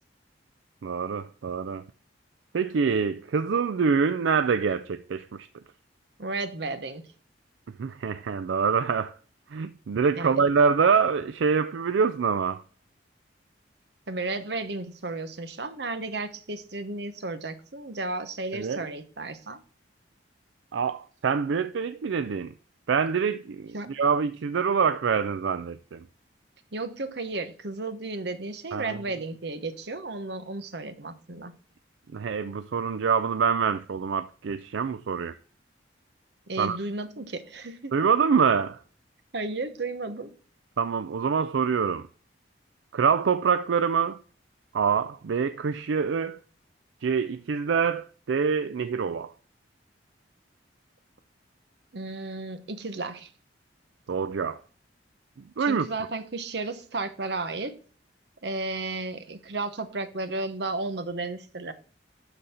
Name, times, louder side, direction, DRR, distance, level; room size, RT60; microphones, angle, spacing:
voice 1, 0.8-1.8 2.5-5.5 7.8-9.1 9.5-12.6 18.5-18.9 20.7-22.5 22.9-26.0 28.7-29.0 32.1-35.4 36.6-36.8 37.9-38.8 40.8-42.1 42.9-44.2 44.7-46.4 47.0-49.3 54.1-54.6 55.6-55.9, right 6 dB, 80° right, 0.4 m, -25 dB
voice 2, 6.2-7.1 10.1-10.4 14.1-19.6 23.7-23.9 26.7-31.6 36.5-37.9 39.3-40.3 51.9-53.3 55.6-57.8 58.4-61.7, right 3 dB, 60° right, 0.9 m, -33 dB
12.0 x 4.0 x 4.2 m
head